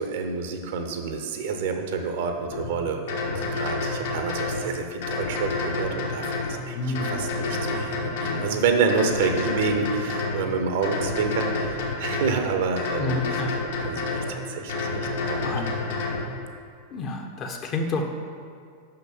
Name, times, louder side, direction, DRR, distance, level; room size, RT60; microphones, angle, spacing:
voice 1, 0.0-6.8 7.1-13.4 13.8-15.5, right 5 dB, 55° right, 5 dB, 0.8 m, -28 dB
sound 1, 2.5-2.7 3.1-4.6 5.0-6.5 6.9-8.5 8.9-10.4 10.8-12.3 12.8-14.3 14.7-16.2, left 3 dB, 60° left, 1.5 m, -28 dB
voice 2, 6.7-7.1 13.0-13.5 15.2-15.7 16.9-18.0, left 3 dB, 35° left, 4 dB, 0.9 m, -29 dB
6.1 x 5.8 x 7.0 m, 2.2 s
figure-of-eight pair, 90°, 0 cm